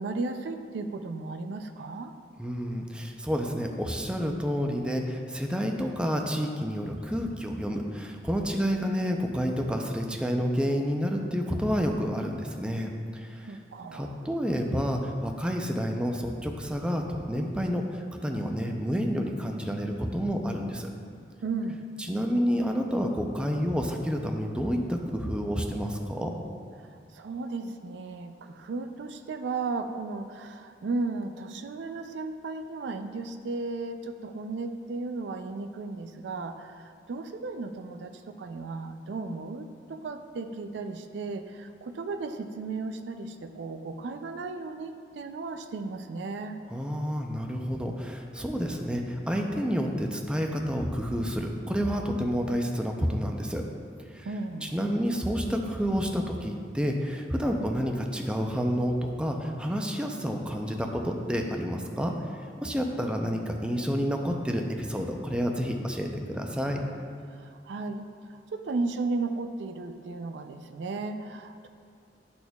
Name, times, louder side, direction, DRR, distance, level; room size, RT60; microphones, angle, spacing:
voice 1, 0.0-2.1 13.5-14.2 21.4-21.8 26.8-46.6 54.2-54.8 67.4-71.7, right 3 dB, 75° right, 7 dB, 0.4 m, -35 dB
voice 2, 2.4-13.5 13.9-17.8 18.2-20.9 22.1-26.3 46.7-53.6 54.1-54.3 54.6-62.1 62.6-66.8, equal, 5° right, 2 dB, 0.4 m, -29 dB
12.0 x 4.3 x 2.3 m, 2.2 s
head